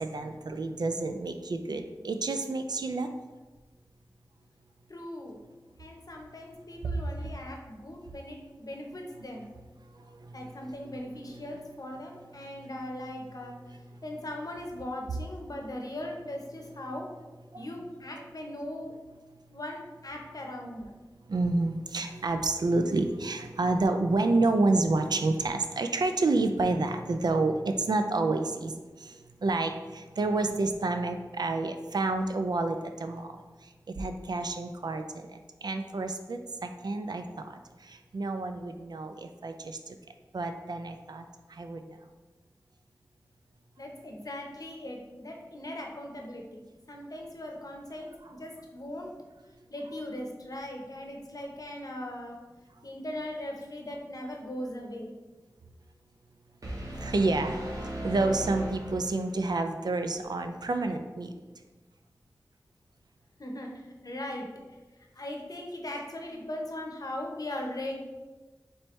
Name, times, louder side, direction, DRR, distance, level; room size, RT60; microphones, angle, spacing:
voice 1, 0.0-3.1 6.8-7.3 9.9-10.5 10.8-11.0 11.3-11.6 12.4-12.7 13.9-14.0 17.5-17.6 21.3-33.3 33.6-39.9 40.3-42.0 48.2-48.3 57.0-57.6 58.0-61.3, right 2 dB, 75° right, 7 dB, 0.4 m, -29 dB
voice 2, 4.9-5.4 5.8-9.5 10.3-13.5 14.0-17.1 17.5-18.9 19.5-20.9 43.8-46.6 46.9-49.1 49.7-52.4 52.8-55.1 63.4-63.7 64.0-64.5 65.2-67.9, left 1 dB, 60° left, 1 dB, 0.7 m, -39 dB
sound 1, 56.6-59.6, right 1 dB, 55° right, 1.1 m, -37 dB
4.3 x 3.3 x 3.1 m, 1.2 s
wide cardioid pair, 60°, 7 cm